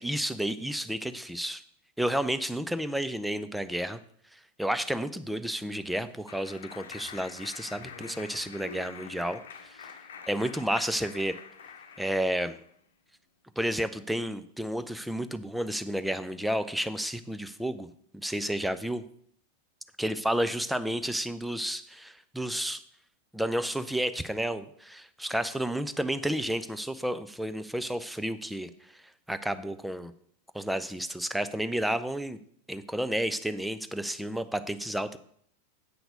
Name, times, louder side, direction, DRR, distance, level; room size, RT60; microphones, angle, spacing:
voice 1, 0.0-1.6 2.0-4.0 4.6-9.9 10.3-11.3 12.0-12.6 13.6-17.9 18.1-19.0 20.0-22.8 23.3-28.7 29.3-30.1 30.5-32.4 32.7-35.2, right 1 dB, ahead, 12 dB, 0.5 m, -31 dB
Clapping, 5.4-12.7, left 6 dB, 60° left, 0.9 m, -46 dB
8.1 x 5.9 x 5.1 m, 0.64 s
figure-of-eight pair, 90°, 0 cm